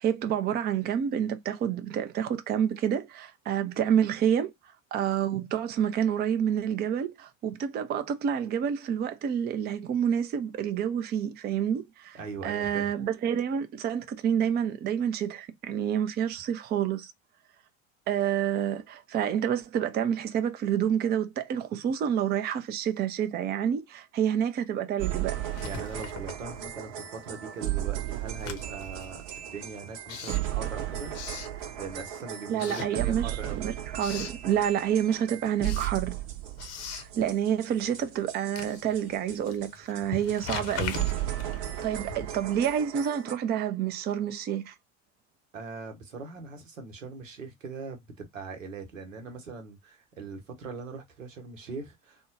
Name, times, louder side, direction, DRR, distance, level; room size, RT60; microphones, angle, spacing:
voice 1, 0.0-4.5 4.9-17.1 18.1-25.4 32.5-36.2 37.0-41.0 41.8-44.7, right 9 dB, 25° right, 0.5 m, -28 dB
voice 2, 12.1-12.9 25.6-31.1 31.8-33.7 45.5-52.3, right 4 dB, 80° right, 0.9 m, -41 dB
sound 1, 25.0-39.7 39.9-40.0 40.3-40.4 40.6-40.7 40.9-43.3, right 13 dB, 50° right, 0.8 m, -35 dB
Writing, 25.4-27.0 27.3-32.1 32.5-33.5 33.8-34.4 34.9-42.5, left 7 dB, 40° left, 0.8 m, -41 dB
3.5 x 2.2 x 2.7 m
figure-of-eight pair, 65°, 38 cm